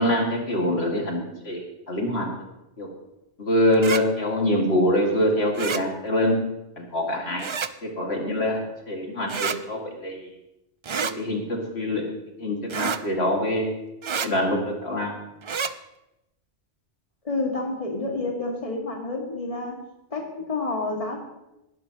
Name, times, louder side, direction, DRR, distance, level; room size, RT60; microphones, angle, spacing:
voice 1, 0.0-1.6 1.9-2.3 2.8-2.9 3.4-6.4 6.8-7.5 7.8-10.3 11.2-12.0 12.4-13.7 14.2-15.2, left 1 dB, 65° left, 0 dB, 2.3 m, -24 dB
sound 1, 3.7-4.0 5.6-5.8 7.4-7.7 9.3-9.6 10.8-11.2 12.7-13.0 14.0-14.3 15.4-15.7, right 6 dB, 55° right, 0.3 m, -28 dB
voice 2, 17.2-19.8 20.1-21.2, left 2 dB, 30° left, 0 dB, 2.1 m, -29 dB
19.5 x 11.5 x 2.9 m, 0.93 s
omnidirectional pair, 1.2 m